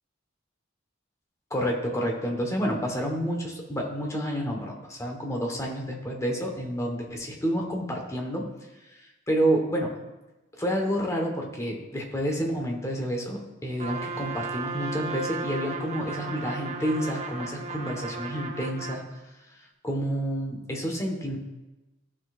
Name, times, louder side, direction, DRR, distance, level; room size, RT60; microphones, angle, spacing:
voice 1, 1.5-8.5 9.3-9.9 10.6-19.0 19.8-21.4, equal, 15° left, 1 dB, 1.2 m, -29 dB
Trumpet, 13.8-19.1, right 3 dB, 35° right, 0.9 m, -35 dB
14.5 x 6.1 x 2.5 m, 1.1 s
head